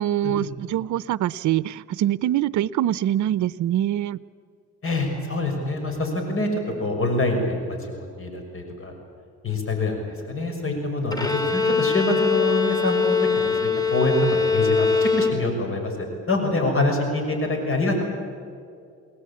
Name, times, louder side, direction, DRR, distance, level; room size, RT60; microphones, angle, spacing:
voice 1, 0.0-4.2, right 12 dB, 75° right, 17 dB, 0.7 m, -24 dB
voice 2, 4.8-6.5 6.8-8.9 9.4-10.0 10.3-18.0, left 2 dB, 45° left, 4 dB, 6.2 m, -25 dB
Bowed string instrument, 11.1-15.8, left 5 dB, 15° left, 2.9 m, -22 dB
29.0 x 19.5 x 8.7 m, 2.3 s
cardioid pair, 90°, 30 cm